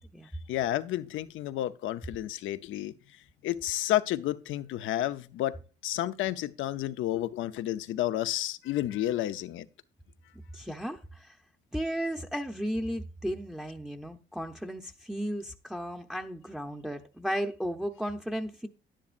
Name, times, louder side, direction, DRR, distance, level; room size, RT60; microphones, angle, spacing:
voice 1, 0.5-2.9 3.4-5.6 5.8-9.7, left 13 dB, 85° left, 0.7 m, -31 dB
voice 2, 10.5-11.4 11.7-18.7, equal, ahead, 0.8 m, -34 dB
10.5 x 10.0 x 2.5 m
cardioid pair, 90°, 20 cm